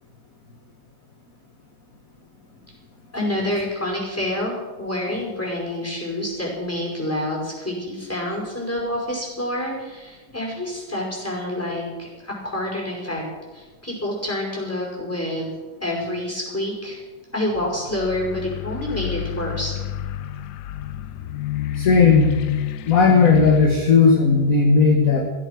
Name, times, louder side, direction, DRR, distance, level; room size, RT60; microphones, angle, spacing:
voice 1, 3.1-13.2 13.5-15.5 15.8-17.0 17.3-19.7, left 1 dB, 5° left, -2 dB, 5.5 m, -27 dB
sound 1, 17.6-23.7, left 11 dB, 70° left, 1.0 m, -29 dB
voice 2, 21.8-22.4 22.9-25.2, left 4 dB, 45° left, 1 dB, 2.1 m, -15 dB
15.5 x 14.5 x 6.1 m, 1.2 s
omnidirectional pair, 2.2 m